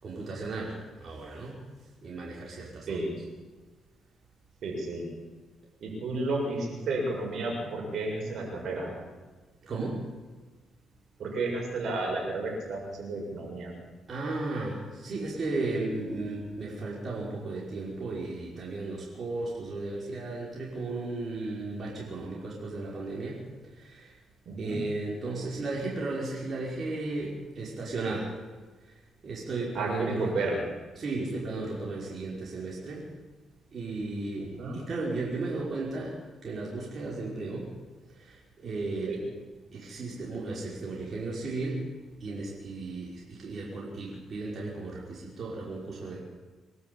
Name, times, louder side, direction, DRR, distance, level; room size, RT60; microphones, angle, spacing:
voice 1, 0.0-1.6 2.0-3.0 9.6-10.0 14.1-23.4 23.7-24.2 24.6-28.4 28.8-30.4 30.9-33.1 33.7-37.7 38.2-39.2 39.7-41.9 42.2-46.2, right 3 dB, 45° right, -4 dB, 5.6 m, -35 dB
voice 2, 4.6-5.0 5.8-9.1 11.2-13.7 24.4-24.8 29.7-30.6 34.6-34.8 39.1-39.2, right 2 dB, 65° right, 1 dB, 6.9 m, -32 dB
24.5 x 12.5 x 8.9 m, 1.3 s
cardioid pair, 90°, 0 cm